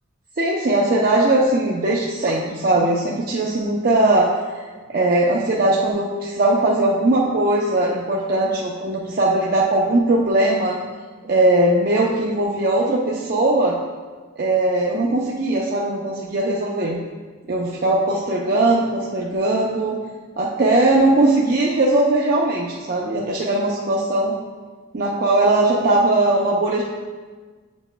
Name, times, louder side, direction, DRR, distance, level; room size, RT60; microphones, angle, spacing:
voice 1, 0.4-4.3 4.9-10.7 11.2-13.7 14.4-17.0 17.5-20.0 20.4-24.3 24.9-26.8, right 2 dB, 45° right, -3 dB, 0.5 m, -19 dB
9.0 x 6.1 x 2.2 m, 1.4 s
head